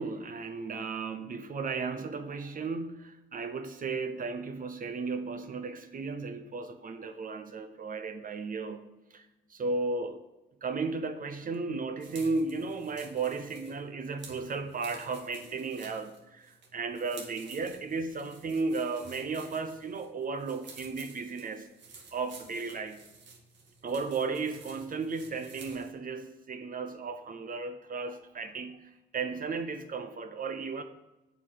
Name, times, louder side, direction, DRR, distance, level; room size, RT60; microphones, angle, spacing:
voice 1, 0.0-8.8 9.1-10.2 10.6-21.7 22.1-23.0 23.8-30.8, right 4 dB, 45° right, 8 dB, 0.8 m, -35 dB
sound 1, 12.0-25.9, right 4 dB, 65° right, 2.0 m, -52 dB
8.1 x 5.0 x 7.2 m, 1.0 s
cardioid pair, 90°, 20 cm